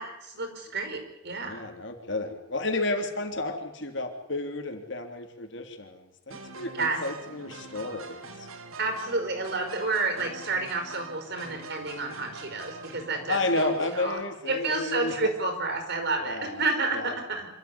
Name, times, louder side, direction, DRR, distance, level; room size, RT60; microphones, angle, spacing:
voice 1, 0.0-1.8 6.7-7.0 8.8-14.2 14.5-17.5, right 3 dB, 55° right, 6 dB, 5.0 m, -30 dB
voice 2, 1.5-8.5 13.3-15.1 16.2-17.1, left 2 dB, 60° left, 4 dB, 3.4 m, -32 dB
sound 1, 6.3-14.0, right 4 dB, 90° right, 2.3 m, -44 dB
26.0 x 13.5 x 10.0 m, 0.88 s
head